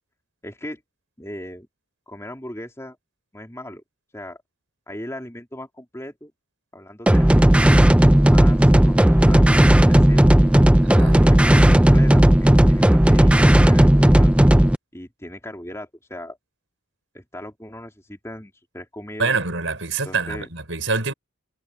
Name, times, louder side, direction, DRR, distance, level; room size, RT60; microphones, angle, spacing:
voice 1, 0.4-0.8 1.2-1.7 2.1-3.0 3.3-3.8 4.1-4.4 4.9-6.3 6.7-7.6 8.3-8.9 9.2-10.4 10.9-14.3 14.9-16.4 17.1-19.3 20.0-20.5, left 1 dB, 15° left, 3.3 m, -37 dB
sound 1, 7.1-14.8, right 1 dB, 5° right, 0.4 m, -14 dB
voice 2, 19.2-21.1, right 4 dB, 70° right, 5.4 m, -25 dB
head